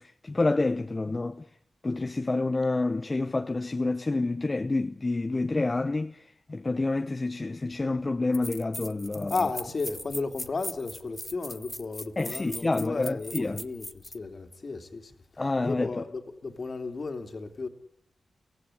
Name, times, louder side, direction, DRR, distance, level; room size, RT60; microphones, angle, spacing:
voice 1, 0.0-1.4 1.8-9.4 12.2-13.6 15.4-16.0, left 2 dB, 35° left, 0.9 m, -28 dB
sound 1, 7.8-7.9 8.3-14.2, left 1 dB, 15° left, 1.1 m, -39 dB
voice 2, 9.3-17.7, left 3 dB, 55° left, 2.8 m, -34 dB
23.0 x 16.0 x 9.9 m
cardioid pair, 60°, 0 cm